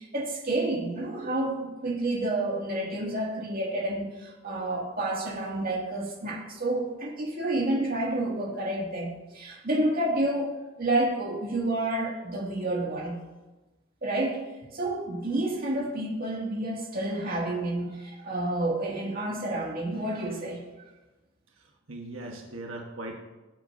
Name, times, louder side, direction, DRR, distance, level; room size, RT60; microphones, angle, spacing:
voice 1, 0.0-13.2 14.0-14.4 14.7-20.6, right 1 dB, 45° right, -2 dB, 2.2 m, -29 dB
voice 2, 21.5-23.1, right 2 dB, 90° right, 0 dB, 1.3 m, -40 dB
19.5 x 7.8 x 2.7 m, 1.1 s
head